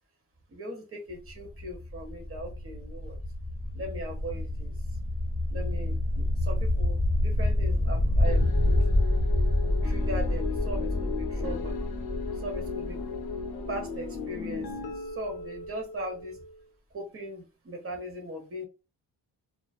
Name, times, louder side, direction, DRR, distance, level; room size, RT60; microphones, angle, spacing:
voice 1, 0.5-3.2 3.7-4.7 5.5-8.8 9.6-11.7 12.4-13.0 13.7-16.4 16.9-18.7, right 1 dB, 35° right, 2 dB, 1.0 m, -39 dB
sound 1, 1.1-14.8, left 1 dB, ahead, 1.4 m, -28 dB
sound 2, 8.2-16.7, left 5 dB, 70° left, 0.6 m, -37 dB
2.4 x 2.3 x 2.3 m, 0.30 s
cardioid pair, 90°, 38 cm